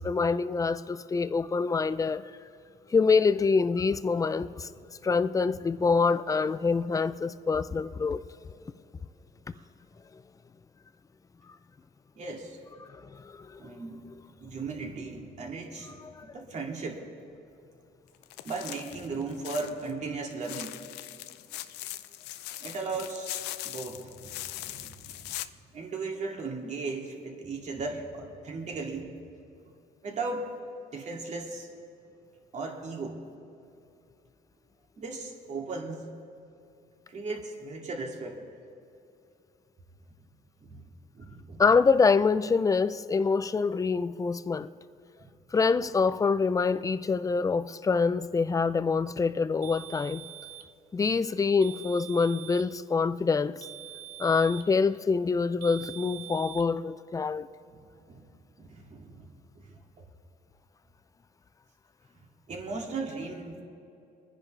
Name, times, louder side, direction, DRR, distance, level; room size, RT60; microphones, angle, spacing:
voice 1, 0.0-2.3 2.9-4.7 5.0-8.2 12.9-13.6 16.0-16.3 41.6-44.7 45.5-50.2 50.9-53.6 54.2-57.5, left 4 dB, 20° left, 0.5 m, -25 dB
voice 2, 12.2-12.6 13.6-14.0 14.4-15.9 16.3-17.0 18.4-20.7 22.6-25.3 25.7-29.1 30.0-30.5 30.9-31.7 32.5-33.2 35.0-36.0 37.1-38.4 40.6-40.8 41.1-41.6 45.2-45.3 57.7-58.3 58.6-59.3 59.6-59.8 62.5-63.6, right 3 dB, 45° right, 2.4 m, -37 dB
sound 1, 18.2-19.9 20.3-25.5, left 15 dB, 90° left, 0.5 m, -40 dB
sound 2, 49.6-50.7 51.6-52.7 53.6-54.7 55.6-56.7, right 13 dB, 75° right, 0.7 m, -44 dB
26.5 x 10.0 x 3.3 m
cardioid pair, 110°, 17 cm